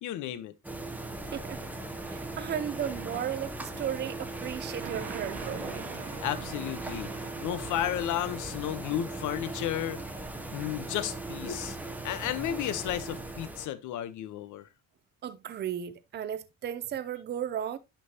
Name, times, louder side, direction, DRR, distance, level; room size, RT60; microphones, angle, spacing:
voice 1, 0.0-0.5 6.2-10.0 10.5-11.8 12.0-14.7, left 11 dB, 70° left, 1.0 m, -33 dB
sound 1, 0.6-13.7, right 2 dB, 5° right, 0.9 m, -39 dB
sound 2, 1.2-9.6, left 3 dB, 20° left, 1.5 m, -54 dB
voice 2, 2.0-5.9 15.2-17.8, right 9 dB, 35° right, 0.6 m, -35 dB
sound 3, 4.8-12.0, right 8 dB, 65° right, 1.5 m, -47 dB
10.5 x 5.5 x 2.9 m
cardioid pair, 155°, 32 cm